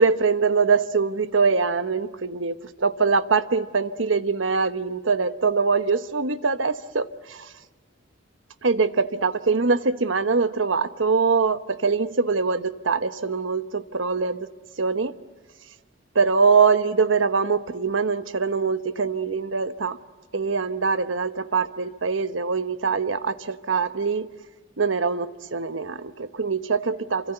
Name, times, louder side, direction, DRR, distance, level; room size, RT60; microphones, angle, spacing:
voice 1, 0.0-7.5 8.6-14.5 14.8-15.1 16.1-20.0 20.3-24.3 24.8-27.3, right 4 dB, 90° right, 11 dB, 1.1 m, -23 dB
27.0 x 25.5 x 7.9 m, 1.4 s
head